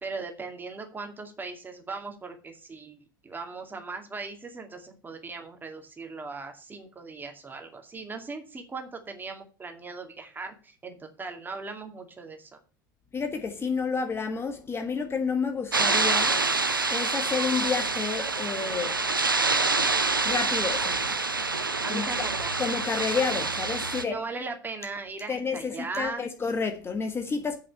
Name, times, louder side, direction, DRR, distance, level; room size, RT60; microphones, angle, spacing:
voice 1, 0.0-12.6 21.8-22.5 24.0-26.3, right 4 dB, 15° right, 2.3 m, -38 dB
voice 2, 13.1-16.4 16.9-19.0 20.2-21.2 21.9-22.3 22.6-24.2 25.3-27.6, left 5 dB, 20° left, 1.5 m, -30 dB
sound 1, 15.7-24.0, right 3 dB, 90° right, 0.7 m, -26 dB
8.3 x 6.2 x 6.5 m
figure-of-eight pair, 80°, 11 cm